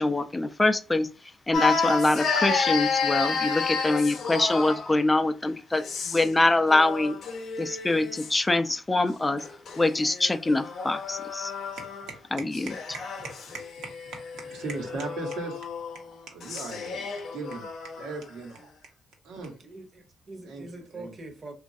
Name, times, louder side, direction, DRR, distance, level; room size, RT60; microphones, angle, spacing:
voice 1, 0.0-7.2 7.6-9.5 9.8-11.5 12.3-12.7, left 2 dB, 15° left, 0.3 m, -24 dB
sound 1, 1.5-5.0 5.8-6.4 6.7-8.3 9.4-12.2 12.5-18.1, left 5 dB, 65° left, 0.6 m, -31 dB
voice 2, 14.4-15.6 16.3-17.7 18.0-18.7 19.2-19.5 20.4-21.1, right 3 dB, 90° right, 1.0 m, -37 dB
voice 3, 19.6-21.5, right 2 dB, 35° right, 0.7 m, -43 dB
3.0 x 2.3 x 2.6 m
cardioid pair, 90°, 0 cm